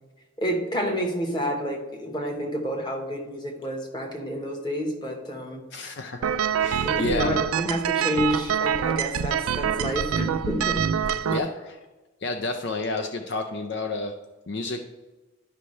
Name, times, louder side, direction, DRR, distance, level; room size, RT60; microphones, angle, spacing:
voice 1, 0.4-5.6 6.8-11.0, equal, 20° left, 2 dB, 1.2 m, -29 dB
voice 2, 5.7-6.2 6.6-7.4 11.3-11.8 12.2-14.1 14.5-14.8, left 3 dB, 55° left, 6 dB, 0.5 m, -30 dB
sound 1, 6.2-11.4, right 8 dB, 90° right, 0.4 m, -25 dB
11.5 x 5.5 x 3.2 m, 1.2 s
head